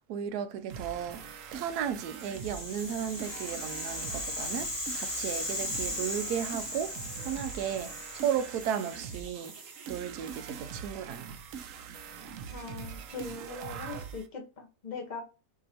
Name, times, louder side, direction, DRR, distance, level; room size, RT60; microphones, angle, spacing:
voice 1, 0.1-1.3 1.5-9.6 9.9-11.4, right 9 dB, 80° right, 1.1 m, -35 dB
sound 1, 0.7-14.3, right 7 dB, 65° right, 0.9 m, -43 dB
Rattle (instrument), 2.1-10.3, left 1 dB, 55° left, 2.3 m, -38 dB
voice 2, 12.5-15.2, left 4 dB, 35° left, 0.9 m, -41 dB
6.0 x 2.8 x 2.9 m
omnidirectional pair, 1.7 m